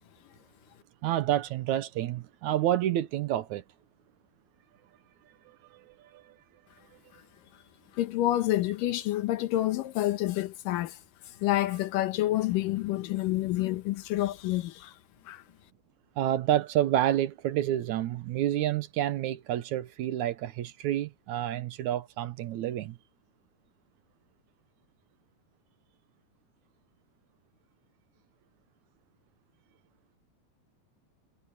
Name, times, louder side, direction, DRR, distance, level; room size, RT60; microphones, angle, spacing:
voice 1, 1.0-3.6 5.5-6.4 16.2-23.0, right 12 dB, 70° right, 2.1 m, -29 dB
voice 2, 7.9-15.0 15.3-15.4, left 15 dB, 85° left, 2.6 m, -28 dB
omnidirectional pair, 3.8 m